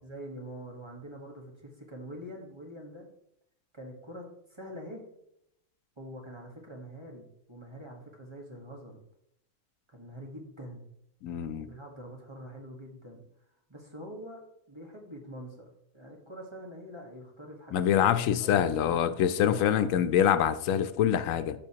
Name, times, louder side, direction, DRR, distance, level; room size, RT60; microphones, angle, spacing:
voice 1, 0.0-3.1 3.7-5.0 6.0-9.0 9.9-10.8 11.3-13.2 13.7-14.4 14.7-15.7 15.9-19.9, equal, 20° right, 0 dB, 1.5 m, -45 dB
voice 2, 11.2-11.7 17.7-21.5, left 9 dB, 90° left, 12 dB, 1.0 m, -25 dB
13.5 x 5.2 x 2.9 m, 0.77 s
omnidirectional pair, 1.3 m